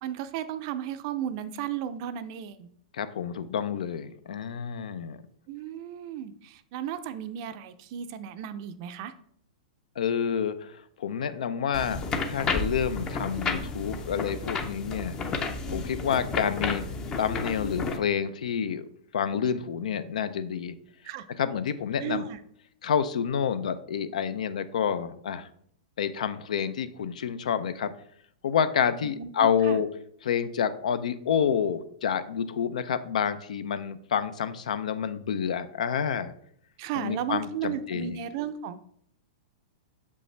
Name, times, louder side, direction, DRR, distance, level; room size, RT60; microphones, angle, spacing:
voice 1, 0.0-2.7 5.5-9.1 21.0-21.2 22.0-22.4 29.0-29.8 36.8-38.8, right 10 dB, 40° right, 12 dB, 0.4 m, -34 dB
voice 2, 2.9-5.2 10.0-15.2 15.7-16.9 17.2-18.9 19.1-20.7 21.4-22.3 22.8-25.5 26.0-27.9 28.4-29.9 30.2-36.3 36.9-38.2, left 7 dB, 80° left, 13 dB, 0.5 m, -28 dB
sound 1, 11.7-18.0, left 4 dB, 20° left, 0.5 m, -32 dB
6.5 x 5.3 x 3.3 m, 0.66 s
hypercardioid pair, 160°, 4 cm